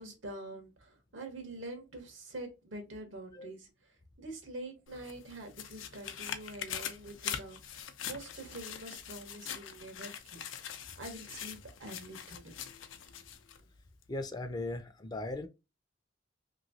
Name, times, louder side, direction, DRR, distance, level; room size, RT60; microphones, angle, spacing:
voice 1, 0.0-10.4 11.0-12.6, right 2 dB, 80° right, 1.2 m, -46 dB
sound 1, 4.9-13.6 14.0-14.1, left 9 dB, 85° left, 0.5 m, -43 dB
voice 2, 14.1-15.5, left 2 dB, 20° left, 0.4 m, -38 dB
3.0 x 2.7 x 2.7 m
head